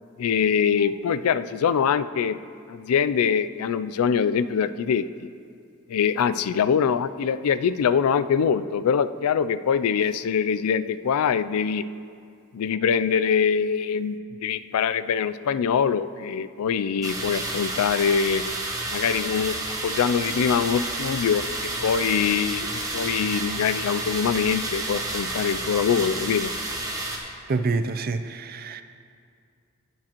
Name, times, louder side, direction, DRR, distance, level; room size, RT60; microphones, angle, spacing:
voice 1, 0.2-2.4 2.7-5.3 5.9-11.8 12.5-18.4 18.9-19.6 19.8-21.5 21.8-26.5, left 7 dB, 90° left, 13 dB, 0.4 m, -23 dB
sound 1, 17.0-27.2, right 2 dB, 15° right, 1.0 m, -30 dB
voice 2, 27.5-28.8, right 3 dB, 45° right, 10 dB, 0.4 m, -27 dB
18.0 x 7.5 x 3.0 m, 2.4 s
head